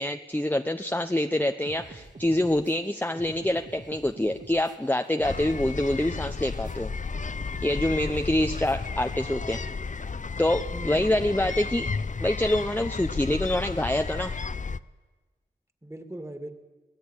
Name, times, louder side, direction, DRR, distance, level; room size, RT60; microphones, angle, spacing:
voice 1, 0.0-6.9 7.6-9.6 10.4-11.9 12.2-14.4, left 1 dB, 10° left, 6 dB, 0.8 m, -26 dB
sound 1, 1.6-9.6, right 3 dB, 45° right, 1.8 m, -47 dB
sound 2, 5.2-14.8, left 4 dB, 40° left, 0.6 m, -33 dB
voice 2, 7.8-8.5 10.7-11.1 15.8-16.5, right 1 dB, 15° right, 7 dB, 2.4 m, -40 dB
23.0 x 17.0 x 10.0 m, 1.3 s
wide cardioid pair, 70°, 19 cm